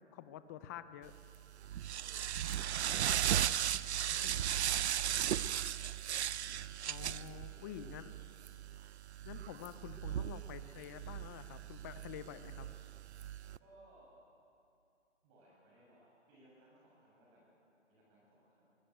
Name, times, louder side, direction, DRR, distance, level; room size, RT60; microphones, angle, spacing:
voice 1, 0.1-1.1 4.2-4.5 6.9-8.1 9.2-12.7, left 10 dB, 15° left, 12 dB, 0.5 m, -48 dB
sound 1, 1.1-13.6, right 10 dB, 65° right, 0.6 m, -37 dB
voice 2, 1.8-6.1 6.9-7.7 13.6-14.2 15.2-17.6 17.9-18.8, right 1 dB, 30° right, -5 dB, 6.4 m, -64 dB
21.5 x 18.5 x 9.3 m, 2.7 s
hypercardioid pair, 145°, 36 cm